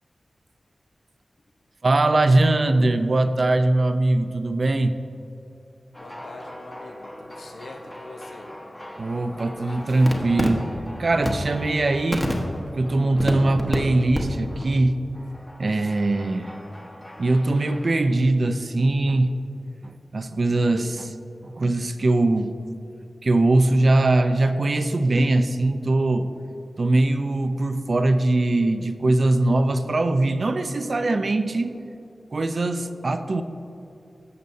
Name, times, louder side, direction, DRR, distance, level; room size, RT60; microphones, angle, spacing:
voice 1, 1.8-4.9 9.0-12.3 12.7-15.0 15.6-16.5 17.2-19.4 19.8-21.1 21.4-22.5 23.2-26.3 26.8-31.7 32.3-33.4, right 2 dB, 50° right, 9 dB, 0.5 m, -21 dB
Ambiente - golpes de obra, 5.9-13.8 14.1-14.2 14.5-14.7 15.1-18.0, equal, 15° left, 1.0 m, -33 dB
voice 2, 6.0-8.6, left 2 dB, 90° left, 2 dB, 0.7 m, -43 dB
15.5 x 6.7 x 2.7 m, 2.7 s
wide cardioid pair, 110°, 0 cm